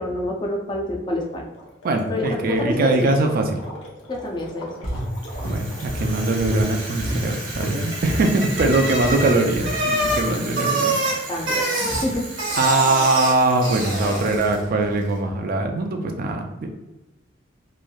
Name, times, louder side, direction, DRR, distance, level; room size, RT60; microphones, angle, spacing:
voice 1, 0.0-1.5 2.1-3.1 4.1-4.9 8.6-8.7 11.3-12.3, left 1 dB, 25° left, -1 dB, 0.5 m, -27 dB
Gurgling, 1.2-8.1, left 1 dB, 85° left, 0.7 m, -43 dB
voice 2, 1.8-3.6 5.4-11.0 11.5-11.9 12.6-16.7, right 2 dB, 50° right, 5 dB, 0.4 m, -22 dB
sound 1, 4.8-7.7 8.0-8.3 8.6-8.7 9.0-9.2 9.5-10.2, equal, 55° left, 1.0 m, -29 dB
Bicycle, 5.2-14.7, right 1 dB, 80° right, 1.0 m, -27 dB
3.1 x 2.6 x 2.3 m, 1.0 s
head